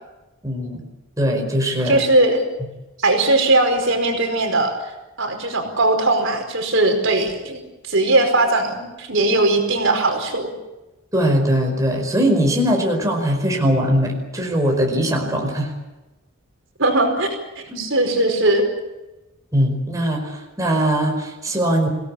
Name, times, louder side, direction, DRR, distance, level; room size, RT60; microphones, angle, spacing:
voice 1, 0.4-0.8 1.2-2.0 11.1-15.7 17.7-17.9 19.5-21.9, equal, 15° right, 1 dB, 4.9 m, -20 dB
voice 2, 1.8-2.4 3.0-4.7 5.2-10.5 16.8-18.7, right 2 dB, 60° right, 4 dB, 5.0 m, -19 dB
26.5 x 18.0 x 8.6 m, 1.1 s
head